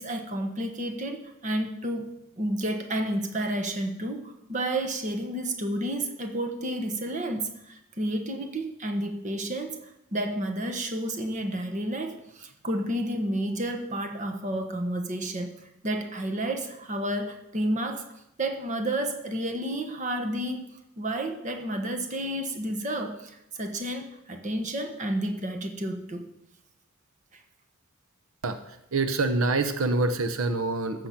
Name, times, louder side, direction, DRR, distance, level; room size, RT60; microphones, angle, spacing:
voice 1, 0.0-18.0 18.4-26.3 27.3-27.4, right 1 dB, 35° right, 5 dB, 1.2 m, -31 dB
voice 2, 28.4-31.1, right 3 dB, 80° right, 9 dB, 0.8 m, -26 dB
14.5 x 7.0 x 5.9 m, 0.85 s
head